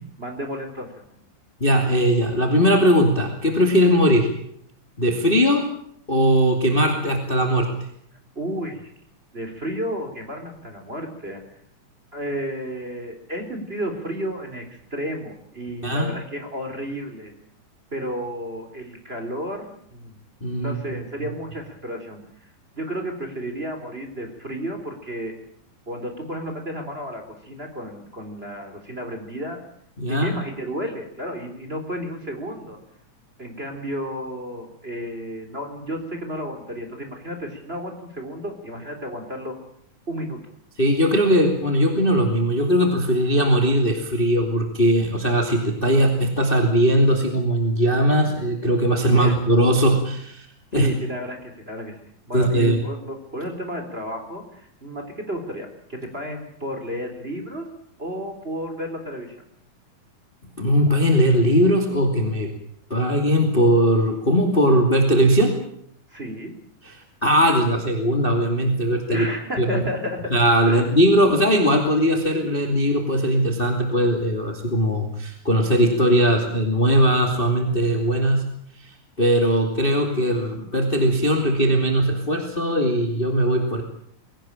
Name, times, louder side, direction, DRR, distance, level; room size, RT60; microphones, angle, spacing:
voice 1, 0.2-1.2 8.4-8.9 9.3-11.4 12.1-17.3 17.9-20.2 20.6-22.2 22.7-25.3 25.9-29.6 30.1-32.8 33.4-39.6 40.1-40.4 49.2-49.4 50.7-57.7 58.0-59.3 66.1-66.5 69.1-70.3 70.7-70.8, equal, 20° right, 4 dB, 3.9 m, -32 dB
voice 2, 1.6-4.3 5.0-5.6 6.1-7.7 15.8-16.1 20.4-20.8 30.0-30.3 40.8-50.5 50.7-50.9 52.3-52.8 60.6-62.5 62.9-65.5 66.8-66.9 67.2-69.3 69.6-69.8 70.3-78.5 78.8-83.8, equal, 15° left, 4 dB, 2.6 m, -19 dB
22.0 x 18.0 x 8.9 m, 0.68 s
omnidirectional pair, 3.7 m